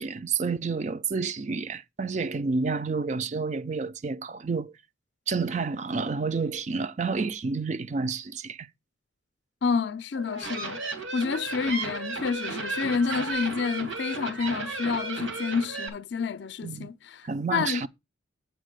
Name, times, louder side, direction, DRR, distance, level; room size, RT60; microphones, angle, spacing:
voice 1, 0.0-4.7 5.3-8.7 16.6-16.9 17.2-17.9, right 4 dB, 35° right, 0.4 m, -29 dB
voice 2, 9.6-10.8 11.1-17.8, left 5 dB, 60° left, 0.4 m, -29 dB
sound 1, 10.1-15.9, right 3 dB, 85° right, 2.4 m, -34 dB
8.9 x 4.5 x 6.5 m
head